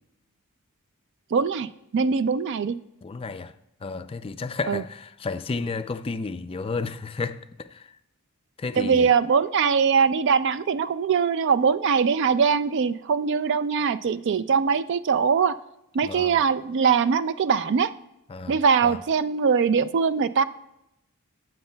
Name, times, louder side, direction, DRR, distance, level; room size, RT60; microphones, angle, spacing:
voice 1, 1.3-1.7 1.9-2.7 4.7-4.8 8.8-15.5 15.9-17.9 18.5-20.4, right 6 dB, 55° right, 0.3 m, -22 dB
voice 2, 3.0-3.5 3.8-7.9 8.6-9.1 16.0-16.4 18.3-19.0, left 4 dB, 25° left, 0.3 m, -32 dB
15.0 x 7.7 x 2.2 m
head